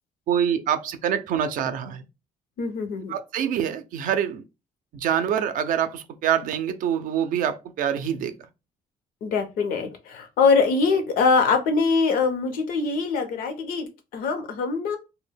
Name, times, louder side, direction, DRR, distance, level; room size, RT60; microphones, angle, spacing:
voice 1, 0.3-2.1 3.1-4.4 4.9-8.3, right 9 dB, 70° right, 0.4 m, -25 dB
voice 2, 2.6-3.1 9.2-15.0, left 4 dB, 85° left, 0.6 m, -23 dB
2.1 x 2.1 x 3.3 m
cardioid pair, 105°, 14 cm